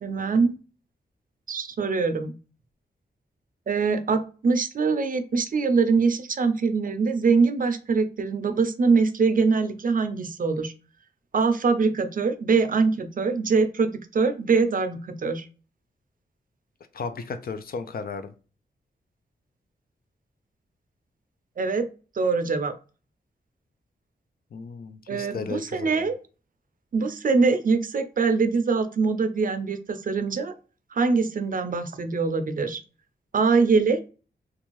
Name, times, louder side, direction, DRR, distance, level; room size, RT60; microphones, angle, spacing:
voice 1, 0.0-0.5 1.5-2.3 3.7-10.7 11.3-15.5 21.6-21.9 22.2-22.7 25.1-26.1 26.9-30.5 30.9-32.8 33.3-34.1, right 4 dB, 50° right, 9 dB, 0.5 m, -23 dB
voice 2, 16.9-18.3 24.5-26.1, left 5 dB, 55° left, 9 dB, 0.4 m, -35 dB
2.5 x 2.3 x 3.0 m, 0.36 s
cardioid pair, 75°, 18 cm